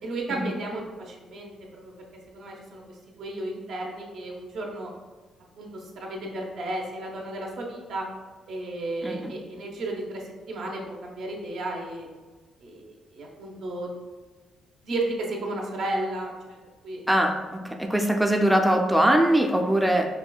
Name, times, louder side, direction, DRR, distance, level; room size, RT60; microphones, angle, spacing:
voice 1, 0.0-2.1 2.3-2.8 3.2-4.9 5.6-8.1 8.5-12.1 12.6-12.8 13.1-13.9 14.8-16.6 16.8-17.0, right 2 dB, 70° right, 0 dB, 0.7 m, -33 dB
voice 2, 9.0-9.3 17.1-20.1, right 1 dB, 5° right, 2 dB, 0.3 m, -22 dB
5.3 x 2.3 x 2.2 m, 1.3 s
cardioid pair, 90°, 0 cm